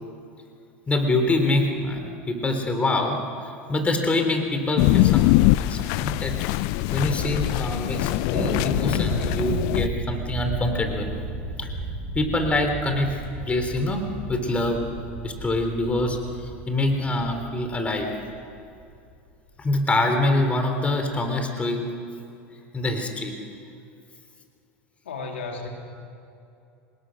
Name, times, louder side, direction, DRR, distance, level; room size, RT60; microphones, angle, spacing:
voice 1, 0.9-6.3 6.9-11.1 11.6-11.7 12.2-13.1 13.5-14.0 14.3-14.8 15.2-18.1 19.6-21.8 22.7-23.3, left 2 dB, 20° left, 5 dB, 3.6 m, -25 dB
sound 1, 4.8-9.9, left 18 dB, 60° left, 0.5 m, -22 dB
Thunder, 8.4-19.0, right 3 dB, 40° right, 7.5 m, -34 dB
voice 2, 25.0-25.7, left 4 dB, 90° left, 2 dB, 3.1 m, -33 dB
25.5 x 20.5 x 6.5 m, 2.6 s
hypercardioid pair, 95°, 6 cm